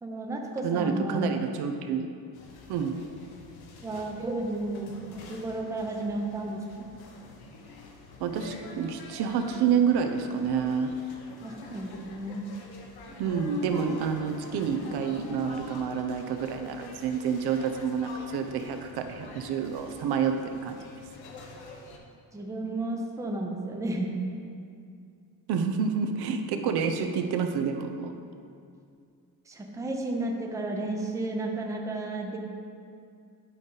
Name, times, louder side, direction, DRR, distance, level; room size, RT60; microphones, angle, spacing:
voice 1, 0.0-1.4 3.8-6.9 11.4-12.5 22.3-24.1 29.5-32.4, right 2 dB, 10° right, 1 dB, 0.5 m, -33 dB
voice 2, 0.6-2.1 2.7-3.0 8.2-10.9 13.2-20.4 20.6-20.8 25.5-28.1, right 6 dB, 75° right, 6 dB, 0.7 m, -28 dB
sound 1, 2.3-22.0, left 2 dB, 70° left, 1.0 m, -47 dB
10.5 x 3.9 x 3.8 m, 2.4 s
cardioid pair, 160°, 39 cm